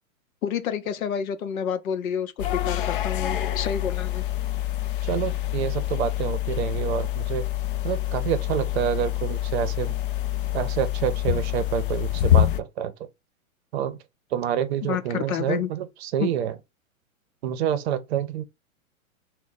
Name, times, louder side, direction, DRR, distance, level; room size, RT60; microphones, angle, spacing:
voice 1, 0.4-4.2 14.8-15.7 16.2-16.3, left 8 dB, 75° left, 0.7 m, -29 dB
sound 1, 2.4-12.6, left 13 dB, 40° left, 0.4 m, -26 dB
voice 2, 5.0-7.4 7.8-9.9 10.5-13.1 13.7-14.0 14.3-16.5 17.4-18.4, right 9 dB, 50° right, 0.7 m, -27 dB
3.5 x 2.2 x 4.0 m
hypercardioid pair, 130°, 42 cm